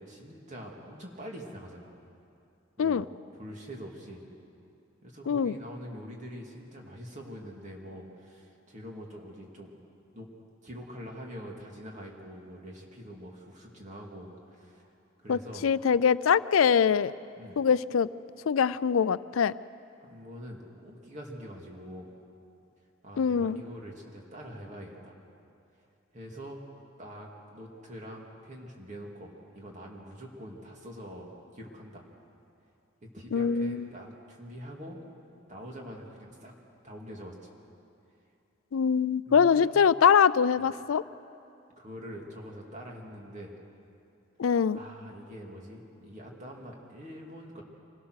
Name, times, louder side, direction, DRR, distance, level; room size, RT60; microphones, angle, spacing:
voice 1, 0.0-1.9 2.8-3.1 3.3-4.2 5.0-9.7 10.1-10.3 10.6-14.9 15.2-15.7 17.4-17.6 20.1-22.1 23.0-25.2 26.1-26.6 27.0-32.1 33.0-35.0 35.5-36.5 36.8-37.5 39.3-39.7 40.5-40.7 41.8-43.5 44.7-47.6, equal, 35° right, 0 dB, 2.6 m, -44 dB
voice 2, 15.3-17.1 17.6-18.1 18.5-19.5 23.2-23.6 33.3-33.8 38.7-41.0 44.4-44.8, left 7 dB, 90° left, 17 dB, 0.4 m, -23 dB
25.0 x 17.0 x 6.5 m, 2.7 s
head